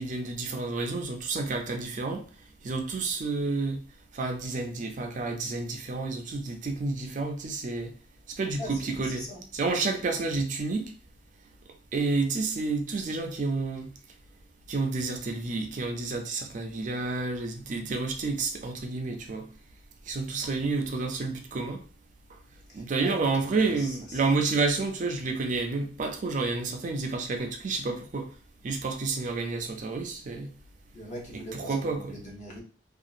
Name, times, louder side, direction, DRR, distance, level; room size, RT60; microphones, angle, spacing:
voice 1, 0.0-2.2 2.6-3.8 4.1-7.9 8.4-9.3 9.5-10.9 11.9-13.9 14.7-19.5 20.1-21.8 22.7-28.3 28.6-30.5 31.3-32.2, right 3 dB, 45° right, 0.4 m, -30 dB
voice 2, 8.6-9.4 22.7-23.9 30.9-32.6, equal, 45° left, 0.9 m, -41 dB
2.8 x 2.3 x 2.5 m
head